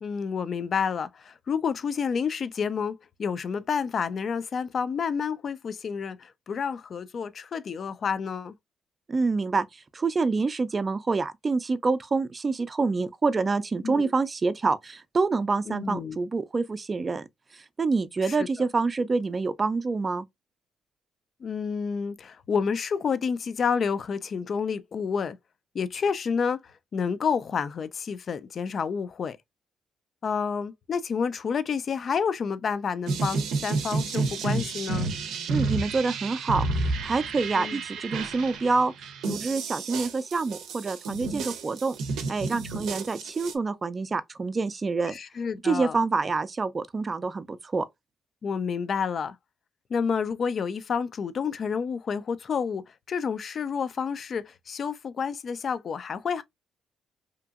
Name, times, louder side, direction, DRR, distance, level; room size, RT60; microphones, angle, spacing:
voice 1, 0.0-8.5 13.8-14.1 15.7-16.2 18.2-18.5 21.4-25.4 25.7-29.4 30.2-35.1 37.6-37.8 45.1-46.0 48.4-49.4 49.9-56.4, left 6 dB, 50° left, 0.4 m, -29 dB
voice 2, 9.1-17.3 17.5-20.2 35.5-38.9 39.3-42.0 42.3-45.1 45.6-47.9, right 4 dB, 30° right, 0.4 m, -27 dB
sound 1, 33.1-43.5, right 3 dB, 85° right, 0.5 m, -31 dB
2.8 x 2.6 x 2.3 m
cardioid pair, 90°, 0 cm